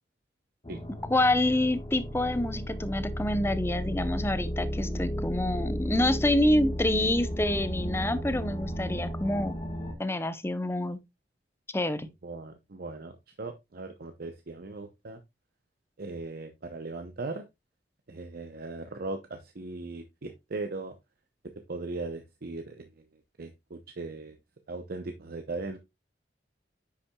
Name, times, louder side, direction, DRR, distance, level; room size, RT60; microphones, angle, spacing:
sound 1, 0.6-9.9, equal, 30° left, 1.3 m, -34 dB
voice 1, 1.1-9.5 10.0-11.0 11.7-12.1, left 1 dB, 15° left, 0.7 m, -27 dB
voice 2, 12.2-15.2 16.0-17.5 18.1-20.9 21.7-23.0 23.4-24.4 24.7-25.8, right 3 dB, 60° right, 0.7 m, -38 dB
9.9 x 5.8 x 2.2 m
head